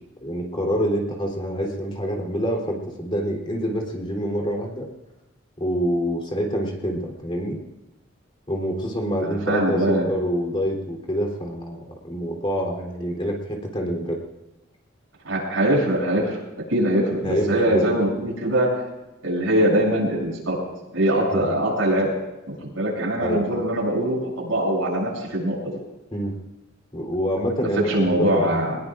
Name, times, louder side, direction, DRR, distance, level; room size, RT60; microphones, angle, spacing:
voice 1, 0.0-4.9 5.6-7.6 8.5-14.2 17.2-17.9 21.3-21.5 23.2-23.6 26.1-26.3 26.9-28.6, equal, 25° left, 0 dB, 3.5 m, -26 dB
voice 2, 9.2-10.1 15.2-16.4 16.7-18.7 19.2-20.6 20.9-22.1 22.5-25.8 27.6-28.8, right 1 dB, 85° right, -3 dB, 7.8 m, -22 dB
23.5 x 20.5 x 2.6 m, 1.0 s
head